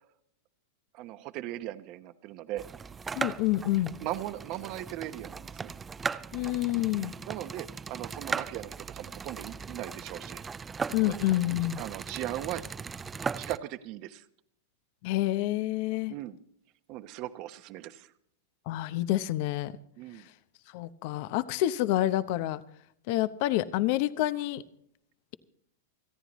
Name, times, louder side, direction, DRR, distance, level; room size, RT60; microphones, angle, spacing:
voice 1, 0.9-2.7 4.0-5.7 7.0-10.4 11.0-11.2 11.8-12.6 13.4-14.2 16.1-16.4 16.9-18.1 20.0-20.3, right 14 dB, 45° right, 12 dB, 1.0 m, -38 dB
sound 1, 2.6-13.6, right 5 dB, 15° right, 0.4 m, -38 dB
voice 2, 3.2-3.9 6.3-7.1 10.9-11.8 15.0-16.1 18.7-19.7 20.7-22.6 23.1-24.6, left 15 dB, 50° left, 14 dB, 0.8 m, -28 dB
29.0 x 10.0 x 3.1 m, 0.70 s
supercardioid pair, 140°, 0 cm